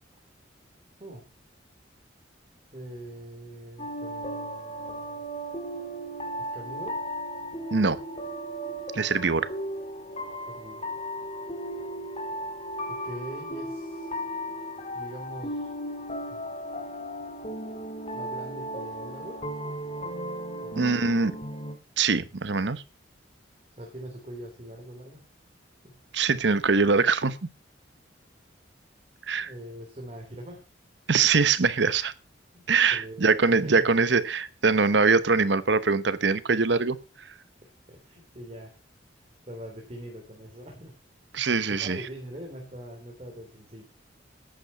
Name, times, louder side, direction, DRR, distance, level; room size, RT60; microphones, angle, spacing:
voice 1, 1.0-1.3 2.7-5.2 6.4-7.0 10.5-10.9 12.9-14.2 14.9-15.7 16.3-16.4 18.1-19.4 20.6-21.3 23.8-25.2 25.8-26.0 29.3-30.6 32.5-33.9 37.6-38.7 39.5-40.9 41.7-43.8, equal, 35° right, 1 dB, 3.3 m, -43 dB
sound 1, 3.8-21.7, equal, 35° left, 2.1 m, -36 dB
voice 2, 8.9-9.5 20.8-21.3 22.0-22.8 26.1-27.5 29.3-29.5 31.1-32.1 32.7-37.0 41.3-42.0, right 4 dB, 70° right, 16 dB, 0.9 m, -23 dB
12.5 x 8.8 x 5.5 m, 0.32 s
head